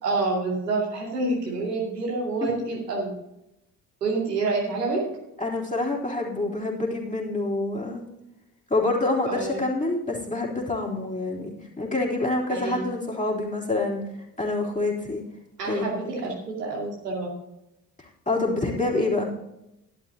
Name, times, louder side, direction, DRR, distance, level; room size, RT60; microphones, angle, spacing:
voice 1, 0.0-3.1 4.0-5.0 9.3-9.6 12.5-12.9 15.6-16.3 16.6-17.3, right 3 dB, 80° right, -3 dB, 2.5 m, -27 dB
voice 2, 5.4-8.0 8.7-14.0 14.4-15.2 15.7-16.1 18.0-19.3, left 2 dB, 15° left, -4 dB, 3.5 m, -27 dB
12.5 x 11.5 x 2.8 m, 0.88 s
figure-of-eight pair, 45°, 48 cm